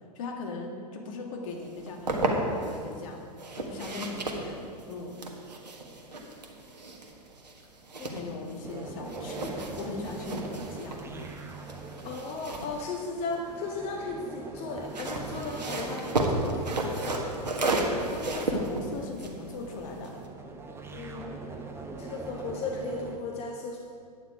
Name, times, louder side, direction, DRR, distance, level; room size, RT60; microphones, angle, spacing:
voice 1, 0.1-3.2 3.5-5.2 8.1-11.2 18.1-20.2, left 3 dB, 55° left, 2 dB, 1.8 m, -39 dB
sound 1, 1.7-2.8 3.4-8.8 9.0-13.7 14.7-20.3, right 2 dB, 85° right, 1.5 m, -33 dB
sound 2, 8.6-23.2, right 3 dB, 10° right, 1.1 m, -43 dB
voice 2, 12.0-17.4 20.9-21.4 21.9-23.8, left 3 dB, 30° left, 1 dB, 1.0 m, -36 dB
10.0 x 9.4 x 4.8 m, 2.3 s
hypercardioid pair, 105°, 21 cm